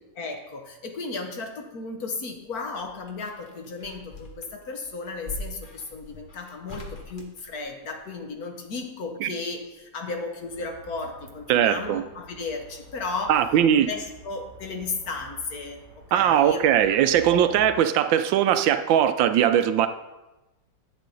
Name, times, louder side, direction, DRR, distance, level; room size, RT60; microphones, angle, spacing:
voice 1, 0.2-13.5 13.7-17.0 17.3-17.5, left 3 dB, 55° left, 3 dB, 1.4 m, -35 dB
sound 1, 2.4-8.2 9.7-10.5 10.8-10.9, left 1 dB, 35° left, 0.9 m, -43 dB
sound 2, 10.4-17.7, right 2 dB, 80° left, 3.3 m, -49 dB
voice 2, 11.5-12.0 13.3-13.9 16.1-19.9, right 10 dB, 80° right, 10 dB, 1.3 m, -20 dB
10.5 x 8.2 x 3.9 m, 1.0 s
omnidirectional pair, 2.1 m